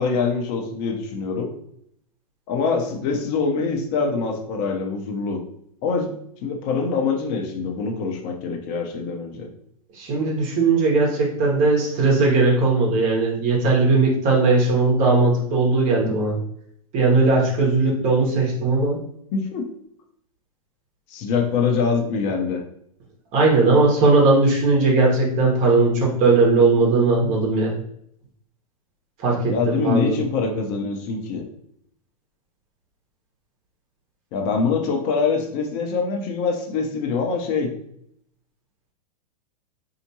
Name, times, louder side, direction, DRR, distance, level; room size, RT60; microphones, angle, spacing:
voice 1, 0.0-1.5 2.5-5.4 5.8-6.2 6.4-9.5 19.3-19.7 21.1-22.6 29.5-31.5 34.3-37.7, left 5 dB, 40° left, 3 dB, 0.8 m, -24 dB
voice 2, 9.9-16.4 16.9-19.0 23.3-27.8 29.2-30.2, right 3 dB, 40° right, -2 dB, 1.3 m, -18 dB
4.2 x 2.8 x 2.8 m, 0.70 s
figure-of-eight pair, 100°, 19 cm